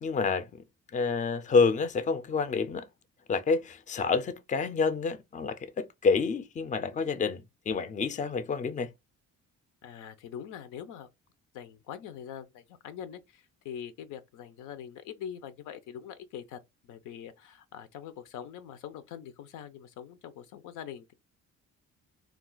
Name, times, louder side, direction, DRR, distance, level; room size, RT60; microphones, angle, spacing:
voice 1, 0.0-0.6 0.9-2.9 3.3-8.9, left 5 dB, 25° left, 0.4 m, -28 dB
voice 2, 9.8-11.1 11.5-21.1, left 9 dB, 85° left, 0.6 m, -43 dB
2.4 x 2.3 x 3.7 m
cardioid pair, 90°, 30 cm